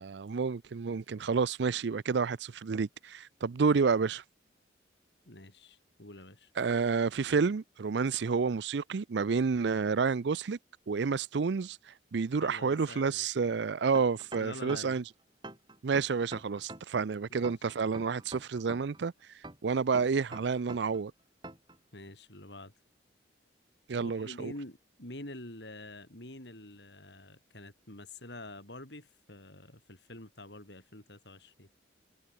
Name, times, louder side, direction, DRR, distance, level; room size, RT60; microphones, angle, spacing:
voice 1, 0.0-4.2 6.6-10.6 10.9-11.8 12.1-15.0 15.8-19.1 19.6-21.1 23.9-24.5, right 5 dB, 70° right, 0.5 m, -29 dB
voice 2, 5.3-6.5 12.4-13.3 14.4-15.0 17.3-17.5 21.9-22.7 24.0-31.7, left 1 dB, 65° left, 5.3 m, -47 dB
sound 1, 13.9-15.0 15.4-17.0 17.4-19.0 19.4-21.0 21.4-21.8, right 2 dB, 25° right, 7.6 m, -45 dB
head